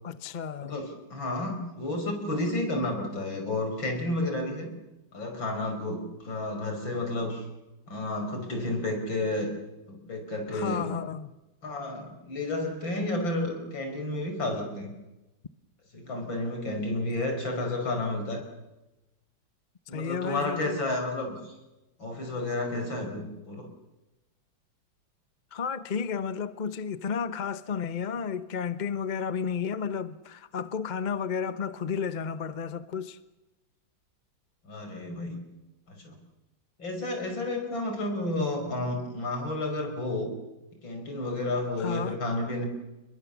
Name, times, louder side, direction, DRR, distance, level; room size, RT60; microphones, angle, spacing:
voice 1, 0.0-0.8 10.5-11.3 19.9-20.8 25.5-33.2 41.8-42.2, left 6 dB, 35° left, 0.8 m, -32 dB
voice 2, 0.6-4.7 5.1-7.4 7.9-9.5 9.9-10.9 11.6-14.9 15.9-18.4 19.9-21.5 22.0-23.7 34.6-35.4 35.9-36.2 36.8-40.3 40.8-42.6, left 2 dB, 75° left, 6.4 m, -31 dB
30.0 x 21.5 x 7.2 m
omnidirectional pair, 2.1 m